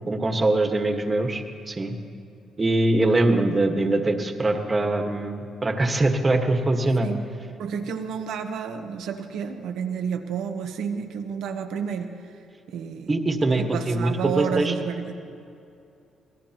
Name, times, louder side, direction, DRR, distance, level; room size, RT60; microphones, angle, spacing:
voice 1, 0.1-1.9 2.6-7.1 13.1-14.7, right 2 dB, 25° right, 4 dB, 1.5 m, -23 dB
voice 2, 7.6-12.1 12.7-13.2 13.5-15.2, right 7 dB, 85° right, 6 dB, 1.1 m, -30 dB
25.5 x 18.5 x 3.0 m, 2.6 s
cardioid pair, 90°, 0 cm